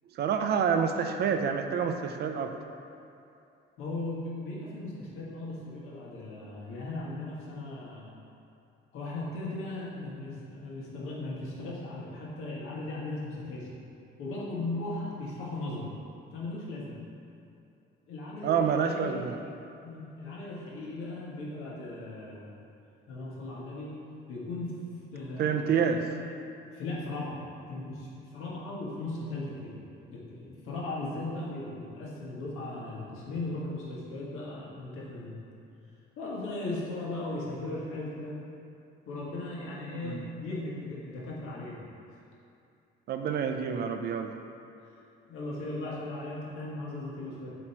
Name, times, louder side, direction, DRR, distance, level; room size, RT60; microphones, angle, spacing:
voice 1, 0.2-2.5 18.4-19.4 25.4-26.0 40.0-40.2 43.1-44.3, right 7 dB, 50° right, 6 dB, 0.4 m, -28 dB
voice 2, 3.8-8.2 8.9-13.7 14.2-15.9 16.3-17.0 18.1-19.2 19.8-22.6 23.1-24.0 24.3-24.7 25.1-26.0 26.7-27.4 27.7-29.8 30.1-35.4 36.2-38.4 39.0-41.8 45.3-47.5, left 2 dB, 80° left, -5 dB, 1.5 m, -37 dB
7.4 x 3.0 x 4.4 m, 2.7 s
cardioid pair, 155°, 21 cm